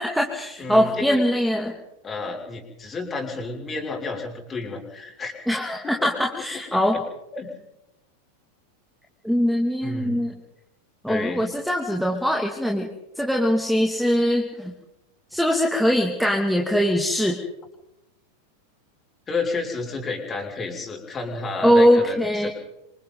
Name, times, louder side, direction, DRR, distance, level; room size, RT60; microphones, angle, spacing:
voice 1, 0.0-1.7 5.5-7.0 9.2-10.3 11.0-12.9 13.2-14.7 15.3-17.4 21.6-22.5, equal, ahead, 0 dB, 2.5 m, -21 dB
voice 2, 0.6-1.2 2.0-5.3 6.0-6.1 6.7-7.0 7.3-7.5 9.8-10.2 11.1-11.4 19.3-22.5, left 3 dB, 20° left, 1 dB, 6.3 m, -31 dB
27.5 x 26.5 x 4.0 m, 0.91 s
figure-of-eight pair, 90°, 0 cm